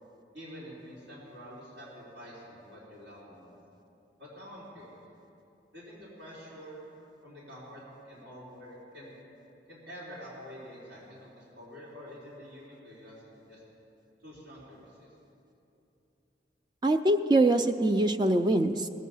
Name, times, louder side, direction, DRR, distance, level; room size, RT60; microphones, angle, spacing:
voice 1, 0.3-3.5 4.2-5.0 5.7-6.9 7.2-9.1 9.7-13.6 14.2-15.1, equal, 80° right, -7 dB, 3.6 m, -47 dB
voice 2, 16.8-18.9, right 2 dB, 25° right, 8 dB, 0.3 m, -24 dB
19.0 x 8.3 x 5.5 m, 2.9 s
head